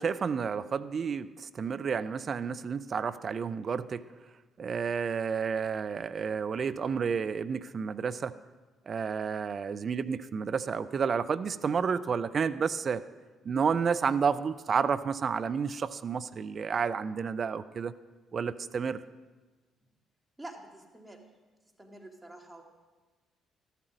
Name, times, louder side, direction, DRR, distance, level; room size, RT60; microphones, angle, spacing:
voice 1, 0.0-4.1 4.6-8.4 8.9-13.0 13.4-17.9 18.3-19.0, right 6 dB, 45° right, 12 dB, 0.5 m, -30 dB
voice 2, 20.4-21.2 21.8-22.6, right 1 dB, 10° right, 1 dB, 2.4 m, -47 dB
13.5 x 12.5 x 5.2 m, 1.3 s
figure-of-eight pair, 45°, 0 cm